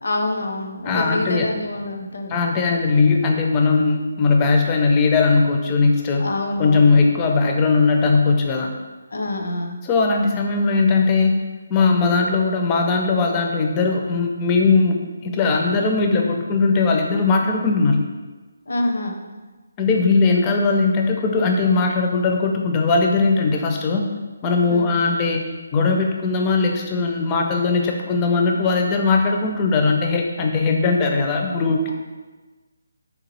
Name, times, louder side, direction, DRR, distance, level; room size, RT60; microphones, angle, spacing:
voice 1, 0.0-2.4 6.2-7.1 9.1-9.8 18.7-19.2 24.7-24.9, left 2 dB, 70° left, 3 dB, 0.5 m, -26 dB
voice 2, 0.8-1.5 2.3-6.2 6.6-8.7 9.8-11.4 11.7-18.0 19.8-24.1 24.4-25.5 25.7-31.9, left 4 dB, 20° left, 2 dB, 0.4 m, -19 dB
3.5 x 2.8 x 2.9 m, 1.3 s
figure-of-eight pair, 155°, 0 cm